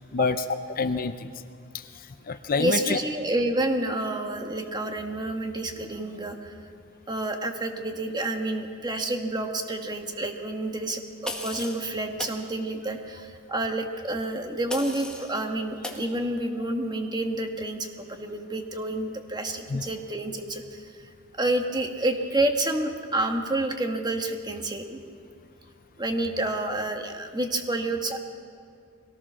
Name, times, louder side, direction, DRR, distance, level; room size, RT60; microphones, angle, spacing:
voice 1, 0.0-1.3 1.7-3.0 19.7-19.8, left 4 dB, 40° left, 10 dB, 0.6 m, -28 dB
voice 2, 2.6-6.5 7.1-21.1 21.3-25.0 26.0-28.2, right 1 dB, 20° right, 4 dB, 1.5 m, -29 dB
sound 1, 11.2-11.8 12.2-12.4 14.7-15.3 15.8-16.0, left 1 dB, 5° left, 1.8 m, -35 dB
23.0 x 18.0 x 6.2 m, 2.3 s
head